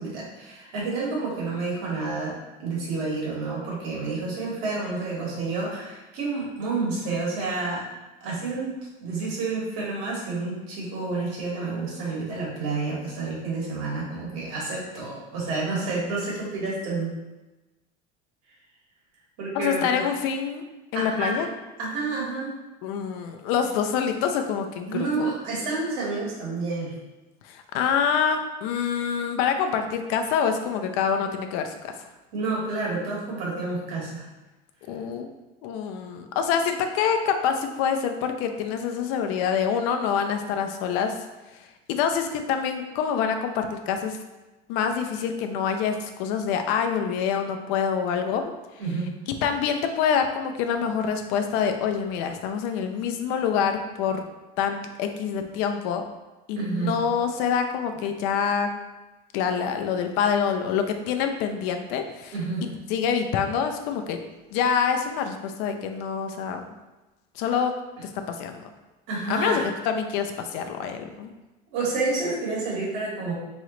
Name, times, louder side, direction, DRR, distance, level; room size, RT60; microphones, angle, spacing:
voice 1, 0.0-7.8 8.2-8.7 9.0-17.1 19.4-20.0 20.9-21.4 21.8-22.6 24.9-26.9 32.3-34.3 48.8-49.1 56.5-56.9 62.3-62.7 69.1-69.7 71.7-73.3, right 3 dB, 75° right, -4 dB, 1.5 m, -29 dB
voice 2, 19.5-20.6 20.9-21.5 22.8-25.3 27.4-32.1 34.9-35.3 35.6-41.1 41.9-44.2 44.7-48.4 49.4-54.2 54.6-56.0 56.5-58.7 59.3-62.3 62.9-64.2 64.5-66.7 67.4-67.7 68.0-68.6 69.3-71.3, left 7 dB, 75° left, 6 dB, 0.5 m, -26 dB
3.7 x 3.1 x 3.1 m, 1.1 s
cardioid pair, 155°, 18 cm